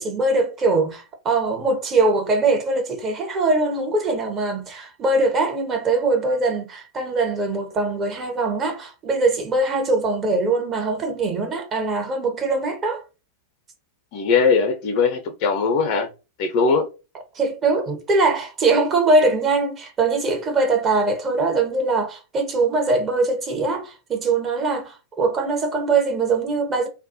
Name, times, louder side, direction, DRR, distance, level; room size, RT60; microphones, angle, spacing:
voice 1, 0.0-13.0 17.3-26.9, right 3 dB, 25° right, 0.8 m, -22 dB
voice 2, 14.1-16.1 16.4-16.9, left 5 dB, 45° left, 0.6 m, -20 dB
2.2 x 2.0 x 2.7 m
figure-of-eight pair, 90°, 0 cm